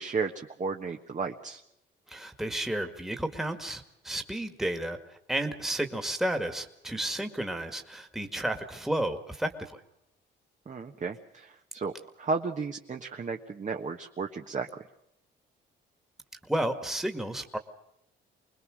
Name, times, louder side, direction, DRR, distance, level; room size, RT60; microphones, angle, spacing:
voice 1, 0.0-1.6 10.7-14.8, right 4 dB, 40° right, 3 dB, 1.4 m, -34 dB
voice 2, 2.1-9.8 16.4-17.6, right 1 dB, ahead, 5 dB, 1.9 m, -32 dB
25.5 x 20.5 x 6.4 m, 0.80 s
cardioid pair, 90°, 20 cm